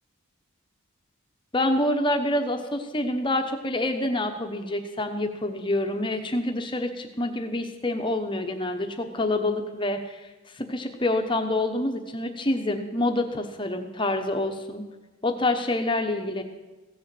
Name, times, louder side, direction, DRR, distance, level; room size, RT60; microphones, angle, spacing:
voice 1, 1.5-10.3 10.5-14.8 15.2-16.4, left 1 dB, 20° left, 5 dB, 1.0 m, -27 dB
16.0 x 7.0 x 7.8 m, 1.2 s
head